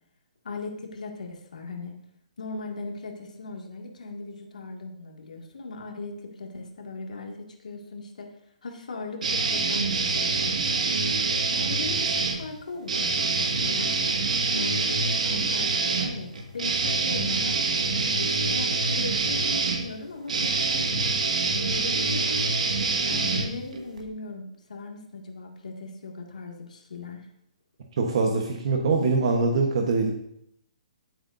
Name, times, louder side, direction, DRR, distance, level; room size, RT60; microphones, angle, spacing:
voice 1, 0.4-2.0 2.4-8.3 8.6-10.9 11.5-13.9 14.5-17.6 17.9-21.1 21.5-22.5 23.0-27.3, left 3 dB, 85° left, 1 dB, 2.2 m, -38 dB
sound 1, 9.2-12.4 12.8-24.0, right 3 dB, 75° right, 1.8 m, -25 dB
voice 2, 28.0-30.1, right 4 dB, 50° right, 2 dB, 1.2 m, -23 dB
14.5 x 7.8 x 2.7 m, 0.77 s
hypercardioid pair, 165°, 4 cm